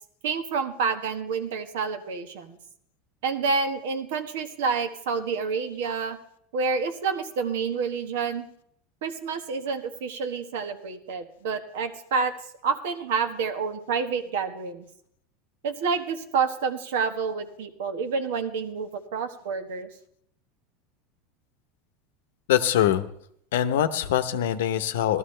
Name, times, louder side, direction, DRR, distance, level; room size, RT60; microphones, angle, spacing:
voice 1, 0.2-2.6 3.2-6.2 6.5-8.5 9.0-12.3 12.6-14.9 15.6-19.9, right 5 dB, 80° right, 8 dB, 1.3 m, -28 dB
voice 2, 22.5-23.1 23.5-25.2, left 11 dB, 90° left, 12 dB, 0.8 m, -23 dB
15.0 x 12.5 x 3.3 m, 0.69 s
supercardioid pair, 140°, 0 cm